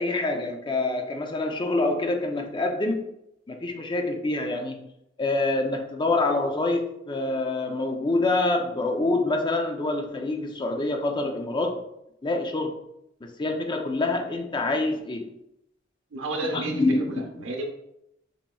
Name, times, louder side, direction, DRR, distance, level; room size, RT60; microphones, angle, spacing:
voice 1, 0.0-3.0 3.5-4.9 5.2-11.8 12.2-12.8 13.2-15.3 16.5-17.4, left 2 dB, 25° left, 4 dB, 0.5 m, -26 dB
voice 2, 16.1-16.8 17.1-17.7, right 2 dB, 80° right, 2 dB, 0.8 m, -31 dB
6.8 x 3.0 x 2.3 m, 0.81 s
head